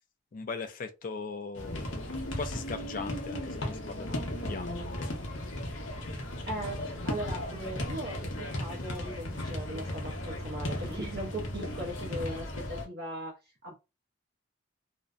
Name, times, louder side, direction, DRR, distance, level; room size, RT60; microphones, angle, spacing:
voice 1, 0.3-1.8 2.2-5.1, left 4 dB, 45° left, 0.3 m, -39 dB
sound 1, 1.6-12.9, left 1 dB, 85° left, 0.7 m, -36 dB
voice 2, 6.5-13.3 13.6-13.7, right 1 dB, 55° right, 0.6 m, -39 dB
2.5 x 2.1 x 2.3 m
head